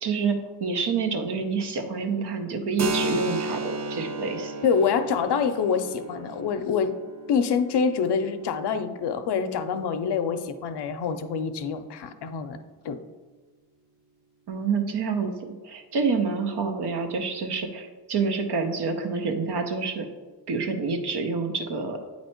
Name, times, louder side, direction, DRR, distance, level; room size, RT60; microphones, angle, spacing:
voice 1, 0.0-4.5 14.5-15.3 15.6-20.1 20.5-22.0, right 4 dB, 85° right, 5 dB, 0.8 m, -27 dB
Keyboard (musical), 2.8-10.2, right 2 dB, 45° right, 0.6 m, -34 dB
voice 2, 4.6-6.9 7.3-12.6 12.8-13.0, left 6 dB, 90° left, 9 dB, 0.6 m, -26 dB
8.6 x 2.9 x 4.4 m, 1.3 s
cardioid pair, 65°, 39 cm